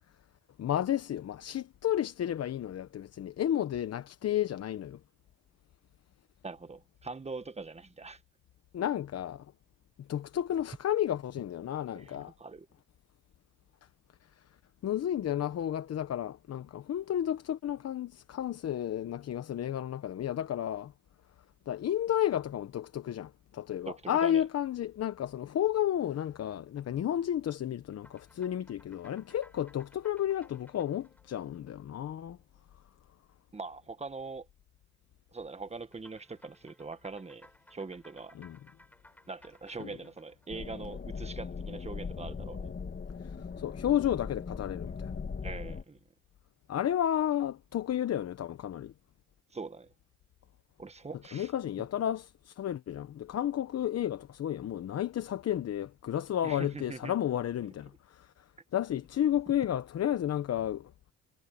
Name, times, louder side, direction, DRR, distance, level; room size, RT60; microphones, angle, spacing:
voice 1, 0.6-5.0 8.7-9.4 10.0-12.3 14.8-20.9 21.7-32.4 38.3-38.6 39.8-39.9 43.2-45.1 46.7-48.9 51.3-58.3 58.7-60.9, left 11 dB, 55° left, 0.9 m, -32 dB
voice 2, 6.4-8.2 11.9-12.7 23.9-24.4 33.5-34.5 35.3-38.3 39.3-42.7 45.4-46.0 49.5-49.9 50.8-51.5 51.8-51.9 56.4-57.1, right 4 dB, 20° right, 1.4 m, -42 dB
sound 1, 27.9-32.6 35.9-41.3, left 1 dB, 5° left, 3.8 m, -61 dB
sound 2, 40.5-45.8, left 5 dB, 35° left, 2.1 m, -39 dB
cardioid pair, 90°, 30 cm